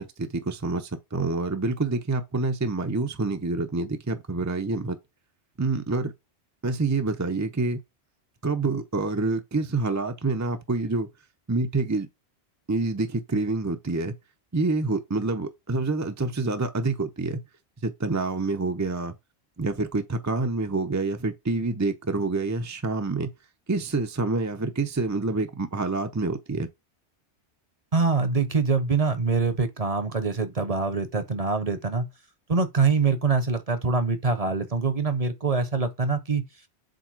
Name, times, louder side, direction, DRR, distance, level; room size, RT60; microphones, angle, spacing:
voice 1, 0.0-5.0 5.6-6.1 6.6-7.8 8.4-11.1 11.5-12.1 12.7-14.2 14.5-17.4 17.8-19.1 19.6-23.3 23.7-26.7, right 3 dB, 20° right, 0.6 m, -27 dB
voice 2, 27.9-32.1 32.5-36.4, right 4 dB, 35° right, 0.9 m, -24 dB
7.7 x 2.9 x 4.7 m
omnidirectional pair, 1.1 m